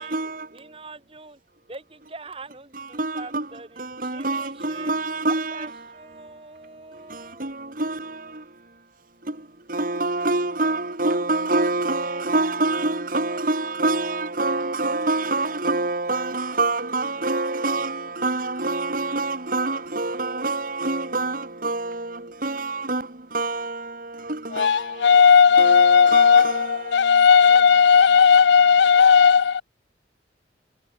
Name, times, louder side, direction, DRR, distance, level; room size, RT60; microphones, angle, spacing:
voice 1, 0.0-0.8 2.7-27.7, right 2 dB, 50° right, 2.4 m, -27 dB
voice 2, 0.5-1.4 1.7-3.8 4.1-4.9 5.3-5.7 5.9-7.5, right 3 dB, 30° right, 2.3 m, -43 dB
voice 3, 24.5-29.6, left 6 dB, 75° left, 0.4 m, -15 dB
head